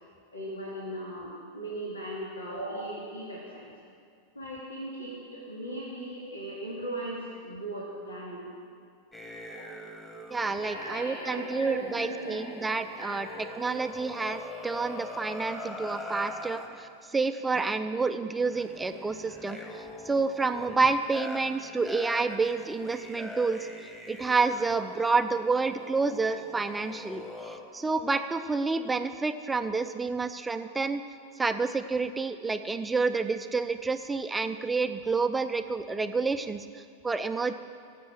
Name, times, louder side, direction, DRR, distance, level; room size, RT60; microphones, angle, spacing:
voice 1, 0.3-3.7 4.3-8.5 9.4-9.7 10.6-13.8 15.5-15.6, right 1 dB, 75° left, -5 dB, 2.5 m, -38 dB
sound 1, 9.1-16.7 17.5-17.8 18.4-27.6, left 1 dB, 10° left, 1.9 m, -43 dB
voice 2, 10.3-13.3 13.6-23.7 24.1-31.0 31.4-37.5, right 4 dB, 10° right, 9 dB, 0.6 m, -29 dB
18.5 x 7.7 x 6.1 m, 2.3 s
figure-of-eight pair, 90°, 0 cm